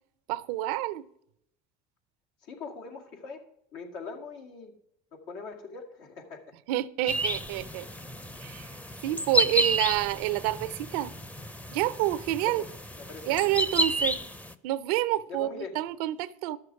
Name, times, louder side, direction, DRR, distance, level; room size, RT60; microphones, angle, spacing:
voice 1, 0.3-1.0 6.7-7.8 8.4-8.7 9.0-11.1 11.7-12.6 13.3-14.2 14.6-16.6, right 15 dB, 85° right, 0.6 m, -28 dB
voice 2, 2.4-3.5 3.7-4.8 5.1-6.5 12.4-12.7 13.0-13.4 15.3-15.8, left 4 dB, 75° left, 2.2 m, -42 dB
sound 1, 7.1-14.5, right 1 dB, 10° left, 0.6 m, -31 dB
12.0 x 6.6 x 4.7 m
supercardioid pair, 95°, 19 cm